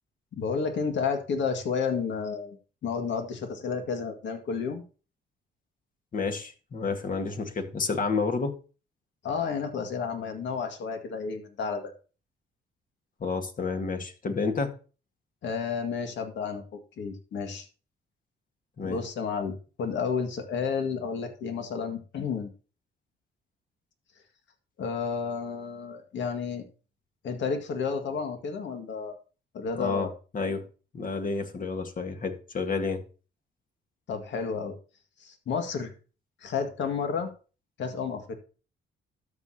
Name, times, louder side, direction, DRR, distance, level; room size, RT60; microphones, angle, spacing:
voice 1, 0.3-4.8 9.2-11.9 15.4-16.6 17.0-17.7 18.8-22.5 24.8-26.6 27.2-29.1 29.5-30.1 34.1-34.8 35.2-35.9 36.4-37.3 37.8-38.3, left 5 dB, 65° left, 2.0 m, -31 dB
voice 2, 6.1-8.6 13.2-14.7 18.8-19.0 29.7-30.6 30.9-33.0, left 4 dB, 45° left, 1.8 m, -30 dB
12.5 x 6.5 x 2.9 m
cardioid pair, 90°, 20 cm